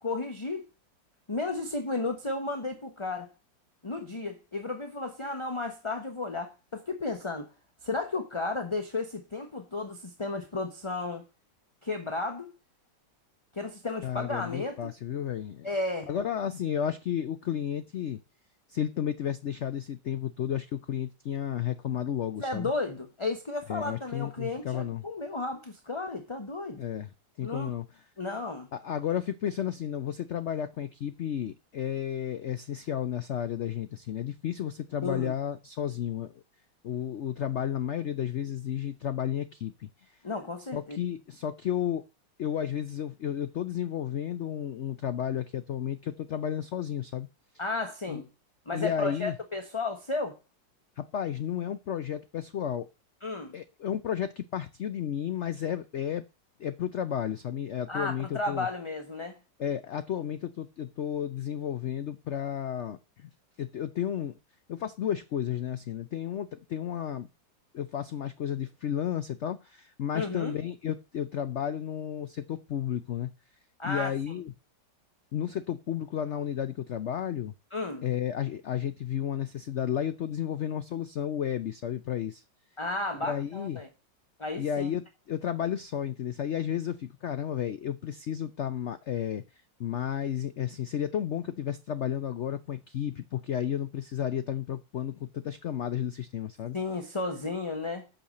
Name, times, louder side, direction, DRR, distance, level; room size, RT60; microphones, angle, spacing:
voice 1, 0.0-0.7 1.3-3.3 3.8-7.5 7.8-11.2 11.8-12.5 13.5-14.9 15.6-16.1 22.4-26.8 27.4-27.7 28.2-28.7 35.0-35.3 40.2-41.0 47.6-48.3 48.7-50.4 53.2-53.5 57.9-59.4 70.1-70.6 73.8-74.4 77.7-78.1 82.8-83.9 84.4-84.9 96.7-98.1, left 3 dB, 20° left, 0.9 m, -33 dB
voice 2, 14.0-15.7 16.1-18.2 18.7-22.7 23.7-25.0 26.8-27.1 27.4-27.9 28.7-36.4 36.8-40.1 40.7-42.0 42.4-47.3 48.1-48.2 48.7-49.3 51.0-52.9 53.5-56.2 56.6-58.7 59.6-63.3 63.6-64.4 64.7-67.3 67.7-73.3 73.8-74.5 75.3-77.5 78.0-82.4 83.2-83.8 84.6-89.4 89.8-96.8, left 9 dB, 80° left, 0.6 m, -32 dB
8.6 x 5.7 x 7.6 m
omnidirectional pair, 2.0 m